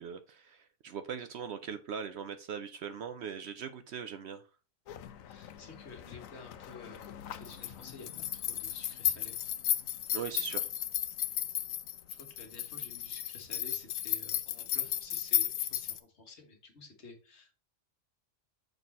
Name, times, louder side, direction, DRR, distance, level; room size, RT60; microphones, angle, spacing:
voice 1, 0.0-4.4 10.1-10.7, right 7 dB, 65° right, 10 dB, 0.7 m, -40 dB
sound 1, 4.9-16.0, left 11 dB, 80° left, 1.0 m, -35 dB
voice 2, 5.3-7.0 7.3-9.4 10.5-10.6 12.1-17.6, left 3 dB, 55° left, 4 dB, 1.5 m, -51 dB
6.7 x 4.2 x 4.1 m, 0.34 s
omnidirectional pair, 1.4 m